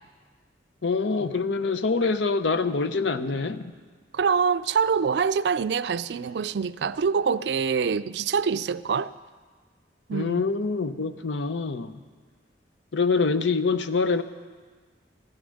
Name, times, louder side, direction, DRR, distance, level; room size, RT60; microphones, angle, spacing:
voice 1, 0.8-3.7 10.1-12.0 12.9-14.2, left 4 dB, 80° left, 0.7 m, -25 dB
voice 2, 4.1-9.1 10.1-10.5, right 6 dB, 65° right, 0.4 m, -25 dB
15.0 x 12.5 x 6.5 m
head